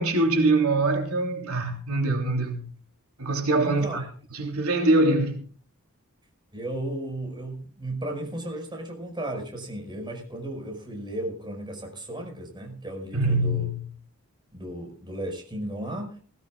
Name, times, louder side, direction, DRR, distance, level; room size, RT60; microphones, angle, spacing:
voice 1, 0.0-2.6 3.2-4.0 4.3-5.4 13.1-13.8, right 2 dB, 85° right, 3.3 m, -23 dB
voice 2, 3.6-4.1 6.5-13.7 14.5-16.2, right 1 dB, 20° right, 5.5 m, -35 dB
19.5 x 18.0 x 2.4 m
head